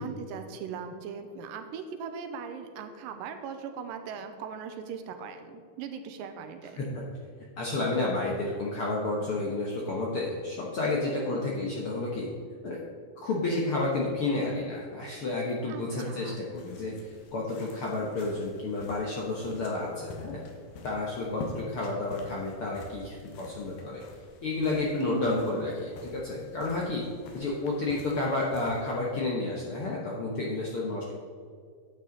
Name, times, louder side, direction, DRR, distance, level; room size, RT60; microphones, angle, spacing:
voice 1, 0.0-7.0 11.2-11.5 15.7-16.4 25.0-25.7, right 7 dB, 85° right, 7 dB, 2.3 m, -39 dB
voice 2, 7.6-12.3 12.6-12.8 13.2-17.0 17.3-20.4 20.8-24.0 24.4-27.0 27.3-31.1, left 2 dB, 70° left, -3 dB, 1.3 m, -31 dB
sound 1, 16.6-29.3, left 2 dB, 90° left, 3.0 m, -48 dB
10.5 x 8.5 x 3.9 m, 2.2 s
omnidirectional pair, 4.0 m